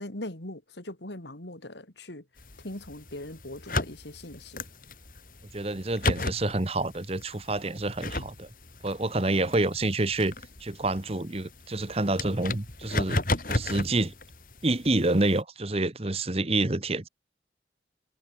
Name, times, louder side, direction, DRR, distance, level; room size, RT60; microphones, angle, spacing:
voice 1, 0.0-2.2 2.6-4.7 9.3-9.5, left 1 dB, 85° left, 4.1 m, -40 dB
sound 1, 2.4-15.4, left 2 dB, 50° left, 4.9 m, -35 dB
voice 2, 5.5-8.5 8.8-10.3 10.6-13.2 13.5-14.1 14.6-17.1, right 2 dB, 35° right, 1.2 m, -28 dB
head